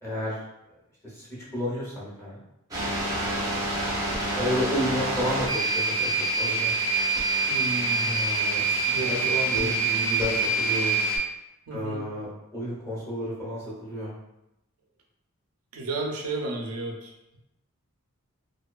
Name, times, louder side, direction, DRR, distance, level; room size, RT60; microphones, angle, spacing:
voice 1, 0.0-0.4 1.0-1.3 1.5-2.4 2.8-3.1 4.3-6.1 6.4-6.7 8.0-11.0 11.7-14.1, equal, 10° left, -7 dB, 0.7 m, -31 dB
sound 1, 2.7-11.2, right 3 dB, 15° right, 0.5 m, -26 dB
voice 2, 7.5-8.2 8.9-9.8 11.7-12.0 15.7-17.4, right 2 dB, 80° right, 1 dB, 0.5 m, -33 dB
2.6 x 2.2 x 2.3 m, 0.88 s
head